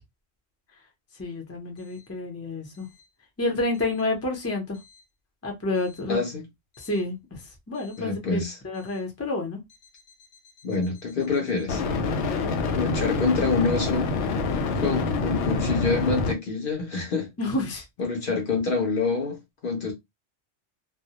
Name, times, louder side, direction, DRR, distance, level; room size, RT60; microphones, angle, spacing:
voice 1, 1.2-2.9 3.4-4.8 5.4-6.2 6.8-7.4 7.7-8.4 8.6-9.6 17.4-17.8, left 2 dB, 15° left, 0.5 m, -29 dB
voice 2, 6.1-6.4 8.0-8.6 10.6-11.8 12.7-14.1 14.8-17.3 18.0-19.4 19.6-19.9, left 4 dB, 55° left, 0.7 m, -26 dB
sound 1, 6.8-7.0 11.7-16.3, left 3 dB, 85° left, 0.9 m, -26 dB
2.2 x 2.0 x 2.8 m
omnidirectional pair, 1.2 m